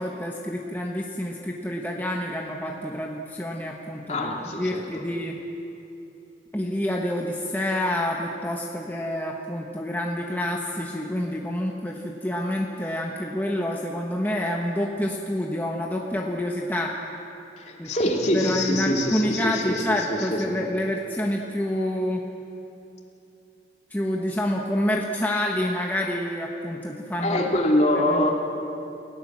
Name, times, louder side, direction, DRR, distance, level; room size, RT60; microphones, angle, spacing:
voice 1, 0.0-5.4 6.5-16.9 17.8-17.9 18.3-22.2 23.9-27.4 28.0-28.2, left 1 dB, 10° left, -1 dB, 1.2 m, -28 dB
voice 2, 4.1-4.8 17.6-20.6 27.2-28.3, left 1 dB, 35° left, 0 dB, 2.7 m, -24 dB
29.0 x 17.0 x 7.4 m, 2.8 s
head